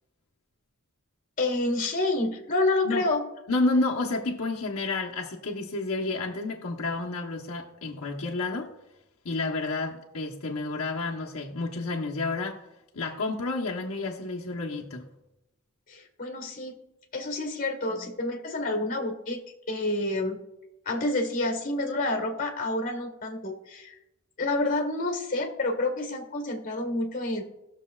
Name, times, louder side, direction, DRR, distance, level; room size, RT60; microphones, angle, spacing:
voice 1, 1.4-3.2 15.9-16.8 17.1-19.4 19.7-20.4 20.9-23.9 24.4-27.4, left 2 dB, 40° left, 3 dB, 1.7 m, -28 dB
voice 2, 3.5-8.7 9.2-12.6 12.9-15.1, left 3 dB, 70° left, -2 dB, 1.0 m, -30 dB
19.5 x 6.7 x 2.4 m, 0.92 s
head